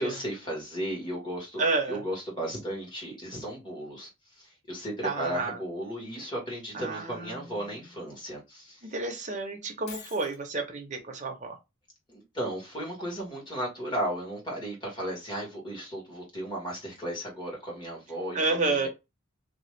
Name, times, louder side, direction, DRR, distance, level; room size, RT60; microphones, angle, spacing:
voice 1, 0.0-4.1 4.3-8.9 12.1-18.4 18.7-18.9, right 1 dB, 20° left, 1.6 m, -35 dB
voice 2, 1.6-2.0 5.0-5.6 6.7-7.5 8.9-11.6 18.3-18.9, right 3 dB, 35° right, 0.8 m, -30 dB
Shatter, 9.9-10.4, left 5 dB, 50° left, 0.7 m, -45 dB
2.8 x 2.3 x 3.2 m
head